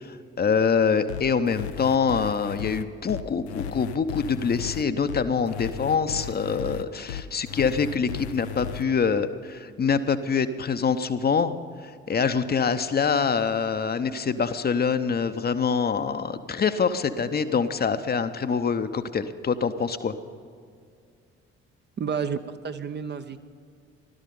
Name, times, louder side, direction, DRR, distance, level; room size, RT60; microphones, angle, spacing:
voice 1, 0.0-11.5 11.8-20.1, left 6 dB, 30° left, 10 dB, 0.8 m, -25 dB
sound 1, 1.1-8.8, left 9 dB, 75° left, 0.6 m, -35 dB
voice 2, 22.0-23.4, right 6 dB, 30° right, 9 dB, 0.7 m, -30 dB
16.5 x 12.5 x 5.4 m, 2.2 s
figure-of-eight pair, 45°, 33 cm